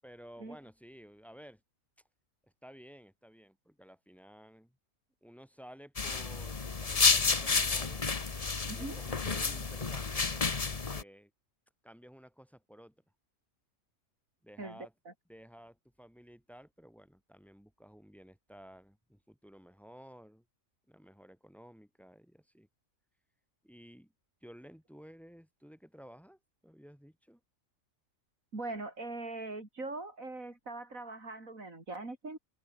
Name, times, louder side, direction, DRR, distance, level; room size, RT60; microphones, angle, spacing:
voice 1, 0.0-1.6 2.4-4.8 5.2-8.0 8.7-11.3 11.8-13.0 14.4-14.9 15.3-20.4 20.9-22.7 23.6-24.1 24.4-27.4, equal, ahead, 6.9 m, -54 dB
sound 1, 6.0-11.0, left 4 dB, 30° left, 1.1 m, -30 dB
voice 2, 8.6-9.0 14.6-14.8 15.0-15.1 28.5-32.4, right 2 dB, 80° right, 4.9 m, -41 dB
omnidirectional pair, 1.4 m